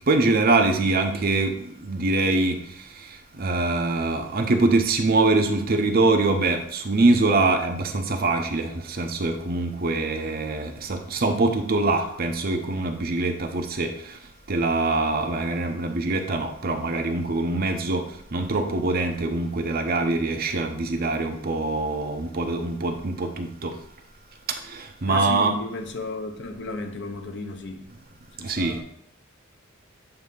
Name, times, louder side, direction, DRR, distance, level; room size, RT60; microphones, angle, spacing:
voice 1, 0.1-14.2 14.5-23.8 24.6-25.5 28.4-28.8, right 2 dB, 45° right, 0.7 m, -24 dB
voice 2, 25.1-27.9 28.4-28.8, left 2 dB, 55° left, 0.9 m, -34 dB
8.0 x 2.8 x 5.3 m
head